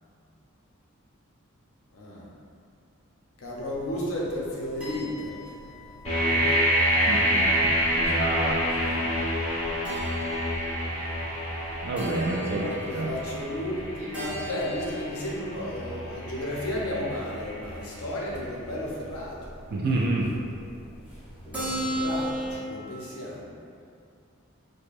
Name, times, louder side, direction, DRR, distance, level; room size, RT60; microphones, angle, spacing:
voice 1, 1.9-2.3 3.4-5.5 6.3-6.6 12.2-19.5 21.9-23.5, left 1 dB, 80° left, -4 dB, 0.7 m, -33 dB
sound 1, 3.4-22.5, equal, 5° right, 0.8 m, -39 dB
sound 2, 6.0-17.8, equal, 30° left, 1.3 m, -28 dB
voice 2, 7.0-8.6 11.8-12.7 12.9-13.1 19.7-20.3, right 2 dB, 45° right, -3 dB, 0.3 m, -28 dB
4.7 x 2.2 x 2.5 m, 2.5 s
head